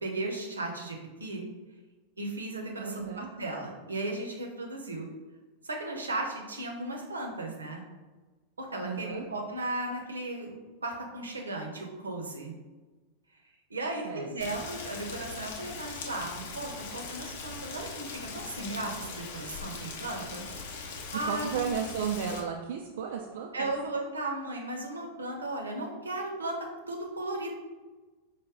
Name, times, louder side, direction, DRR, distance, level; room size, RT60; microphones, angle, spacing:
voice 1, 0.0-1.4 2.2-5.1 5.6-7.8 8.6-10.6 10.8-12.5 13.7-20.4 21.1-21.7 23.5-27.5, right 2 dB, 75° right, 1 dB, 0.7 m, -36 dB
voice 2, 2.8-3.3 8.8-9.3 14.0-14.3 21.1-23.7, right 7 dB, 55° right, 1 dB, 0.3 m, -34 dB
Rain, 14.4-22.4, left 4 dB, 55° left, 0.6 m, -41 dB
4.8 x 2.2 x 3.6 m, 1.3 s
figure-of-eight pair, 90°, 0 cm